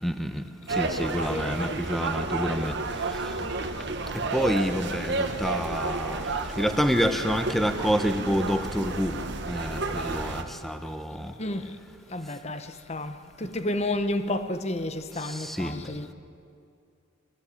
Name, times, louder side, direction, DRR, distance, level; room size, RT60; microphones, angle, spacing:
voice 1, 0.0-0.4 0.8-2.7 4.1-6.2 6.6-9.2 9.5-11.3 15.4-15.7, equal, ahead, 1.0 m, -27 dB
sound 1, 0.7-10.4, right 3 dB, 55° right, 1.6 m, -31 dB
voice 2, 1.3-1.8 11.4-11.8 12.1-16.1, left 1 dB, 30° left, 1.0 m, -31 dB
23.0 x 18.0 x 8.5 m
head